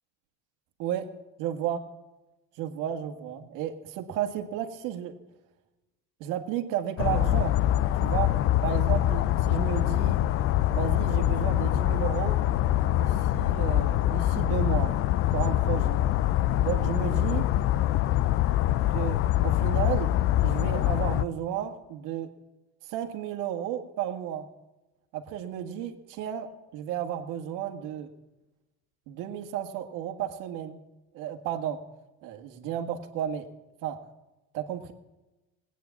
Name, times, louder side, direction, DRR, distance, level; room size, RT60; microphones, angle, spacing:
voice 1, 1.4-1.8 2.6-5.1 6.2-7.5 8.0-8.3 8.6-10.2 10.7-12.4 12.9-15.0 15.3-16.0 16.6-17.5 18.9-20.1 20.4-22.3 22.8-24.5 25.1-28.1 29.1-30.8 31.1-31.8 32.2-33.5 33.8-34.0 34.5-34.9, right 10 dB, 65° right, 6 dB, 1.9 m, -33 dB
sound 1, 7.0-21.2, left 13 dB, 40° left, 0.4 m, -24 dB
19.5 x 9.3 x 7.2 m, 1.1 s
cardioid pair, 155°, 34 cm